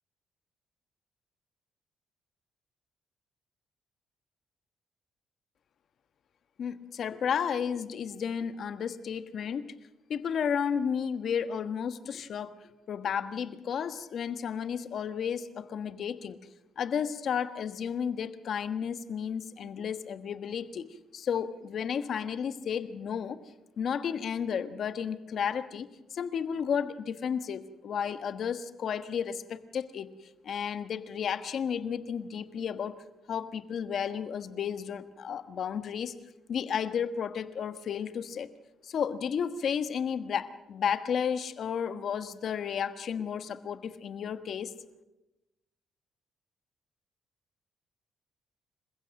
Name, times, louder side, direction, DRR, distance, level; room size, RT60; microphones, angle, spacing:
voice 1, 6.6-9.6 10.1-12.5 12.9-16.4 16.8-23.4 23.8-30.1 30.4-33.0 33.3-36.1 36.5-38.5 38.8-44.7, left 7 dB, 60° left, 11 dB, 1.3 m, -32 dB
27.5 x 15.5 x 6.5 m, 1.0 s
cardioid pair, 90°, 0 cm